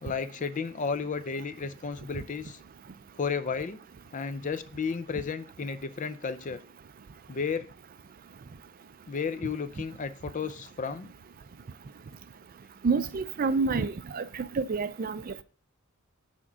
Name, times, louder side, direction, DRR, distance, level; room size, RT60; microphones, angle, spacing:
voice 1, 0.0-2.6 3.2-3.8 4.1-6.6 7.3-7.7 9.1-11.1, left 5 dB, 40° left, 0.5 m, -33 dB
voice 2, 12.8-14.2 14.5-15.4, right 4 dB, 45° right, 0.4 m, -28 dB
6.2 x 4.4 x 6.0 m
head